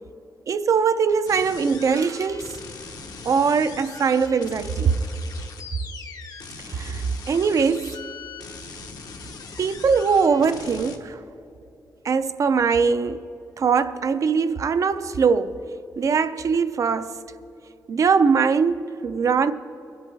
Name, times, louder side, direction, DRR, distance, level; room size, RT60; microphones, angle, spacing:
voice 1, 0.5-2.5 3.2-5.0 6.6-8.0 9.6-11.2 12.0-13.3 13.6-15.6 16.0-17.2 17.9-19.5, right 5 dB, 55° right, 0.5 m, -21 dB
sound 1, 1.3-11.0, left 4 dB, 80° left, 1.0 m, -40 dB
24.0 x 8.1 x 3.4 m
wide cardioid pair, 125°, 7 cm